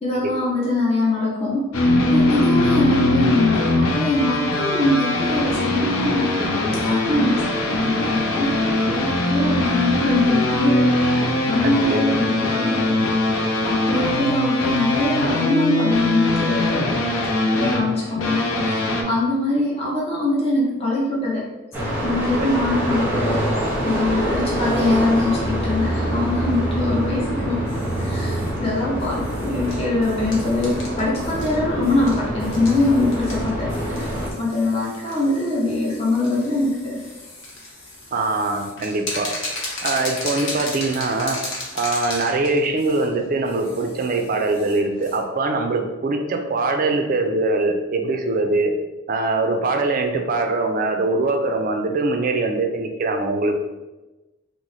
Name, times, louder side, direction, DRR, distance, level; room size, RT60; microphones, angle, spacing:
voice 1, 0.0-7.5 7.7-17.0 17.6-21.4 22.0-27.6 28.0-34.1 34.4-37.0, left 2 dB, 30° left, -5 dB, 0.6 m, -23 dB
sound 1, 1.7-19.0, left 2 dB, 90° left, 0.6 m, -21 dB
voice 2, 11.6-12.0 22.4-22.5 28.1-28.2 38.1-39.3 39.8-41.4 41.7-48.7 49.1-53.6, right 2 dB, 40° right, 4 dB, 0.4 m, -22 dB
sound 2, 21.7-34.3, right 1 dB, 10° right, 0.7 m, -25 dB
sound 3, 27.7-45.2, left 2 dB, 70° left, 0.9 m, -36 dB
3.0 x 2.0 x 3.9 m, 1.1 s
head